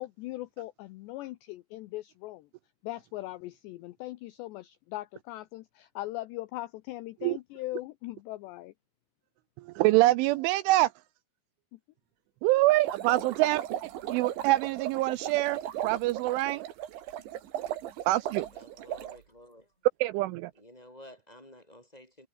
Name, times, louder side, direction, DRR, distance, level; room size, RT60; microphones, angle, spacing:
voice 1, 0.0-2.5 2.8-8.7 11.7-11.8, left 17 dB, 85° left, 2.4 m, -40 dB
voice 2, 9.8-10.9 12.4-13.6 14.1-16.6 18.1-18.5 20.0-20.5, right 18 dB, 80° right, 2.9 m, -25 dB
sound 1, 12.7-19.2, right 12 dB, 65° right, 4.0 m, -37 dB
voice 3, 18.5-19.7 20.6-22.3, left 1 dB, 10° left, 3.7 m, -52 dB
omnidirectional pair, 6.0 m